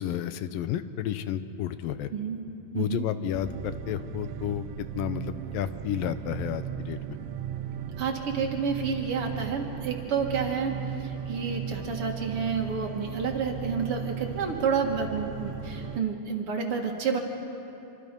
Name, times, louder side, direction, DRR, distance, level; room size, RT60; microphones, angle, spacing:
voice 1, 0.0-2.1 2.7-7.0, left 10 dB, 85° left, 12 dB, 2.5 m, -31 dB
voice 2, 2.1-2.4 2.7-3.1 8.0-17.2, right 5 dB, 50° right, 2 dB, 2.3 m, -30 dB
sound 1, 3.3-16.0, right 9 dB, 90° right, 2.5 m, -37 dB
26.5 x 25.0 x 5.3 m, 2.9 s
omnidirectional pair, 3.9 m